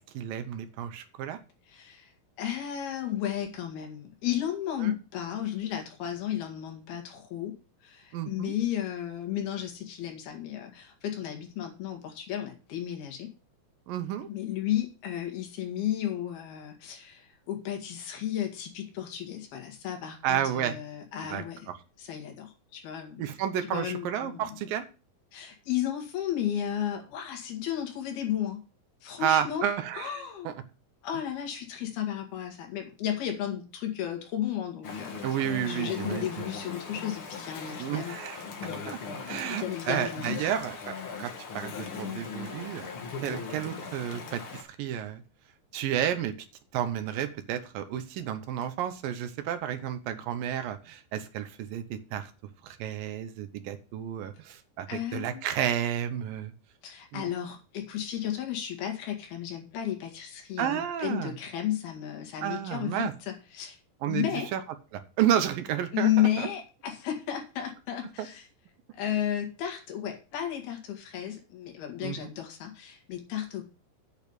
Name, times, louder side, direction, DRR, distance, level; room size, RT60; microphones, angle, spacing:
voice 1, 0.0-1.4 4.8-5.0 8.1-8.5 13.9-14.3 20.2-20.7 21.3-21.8 23.2-24.8 29.2-30.5 35.2-36.3 37.8-38.4 38.9-39.0 39.3-42.9 43.2-45.2 45.7-46.3 46.7-52.3 52.6-56.5 57.1-57.3 60.6-61.3 62.4-63.1 64.0-64.6 64.9-66.5 68.2-68.3 72.0-72.3, right 10 dB, 75° right, 10 dB, 2.5 m, -31 dB
voice 2, 1.7-2.1 2.4-7.5 7.8-13.3 14.3-21.7 22.0-23.2 23.6-24.6 25.3-28.6 29.0-29.7 30.0-30.6 31.0-35.2 35.7-38.2 39.5-40.5 54.9-55.5 56.8-63.8 64.1-64.5 65.9-68.5 68.9-73.7, left 11 dB, 85° left, 4 dB, 3.9 m, -33 dB
Chatter / Stream, 34.8-44.6, left 5 dB, 50° left, 1.7 m, -39 dB
8.9 x 5.5 x 8.1 m, 0.34 s
omnidirectional pair, 4.3 m